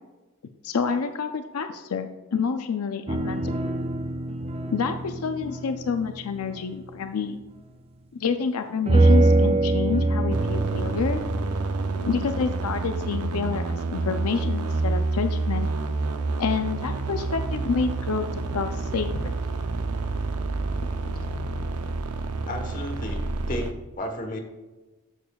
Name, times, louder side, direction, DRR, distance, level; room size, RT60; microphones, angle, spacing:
voice 1, 0.6-3.6 4.7-7.4 8.1-11.2 12.0-15.7 16.4-19.3, left 5 dB, 85° left, 7 dB, 0.5 m, -28 dB
sound 1, 3.1-7.1 8.9-13.6 13.9-14.1, right 2 dB, 25° right, 0.4 m, -25 dB
sound 2, 10.3-23.7, right 3 dB, 90° right, 0.6 m, -28 dB
voice 2, 22.4-24.4, left 1 dB, 35° left, 4 dB, 1.1 m, -33 dB
12.5 x 6.8 x 2.3 m, 1.1 s
head